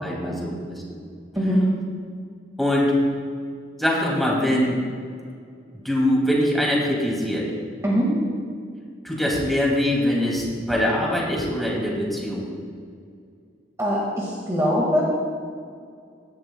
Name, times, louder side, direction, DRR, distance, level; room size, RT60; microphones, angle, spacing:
voice 1, 0.0-1.0 2.6-2.9 3.8-4.8 5.7-7.5 9.0-12.5, left 1 dB, ahead, -4 dB, 2.5 m, -23 dB
voice 2, 13.8-15.0, equal, 15° right, -5 dB, 1.8 m, -22 dB
17.0 x 12.0 x 2.3 m, 2.2 s
head